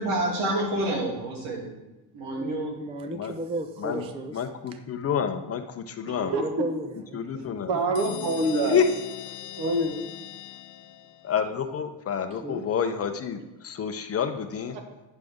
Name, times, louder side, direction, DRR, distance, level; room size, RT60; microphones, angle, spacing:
voice 1, 0.0-1.8 2.1-2.7 3.9-4.1, right 1 dB, 85° right, -1 dB, 2.7 m, -28 dB
voice 2, 2.4-4.4 6.2-6.9 7.1-7.6 12.4-12.7, right 2 dB, 15° right, 8 dB, 0.3 m, -34 dB
voice 3, 4.3-6.3 7.1-7.7 8.7-9.0 11.2-14.8, left 7 dB, 30° left, 7 dB, 0.6 m, -28 dB
voice 4, 6.0-6.5 7.3-8.8 9.6-10.0 14.7-14.8, right 2 dB, 55° right, 4 dB, 1.6 m, -27 dB
sound 1, 7.9-11.5, left 13 dB, 85° left, 0.7 m, -40 dB
9.0 x 6.6 x 3.5 m, 1.0 s
cardioid pair, 135°, 47 cm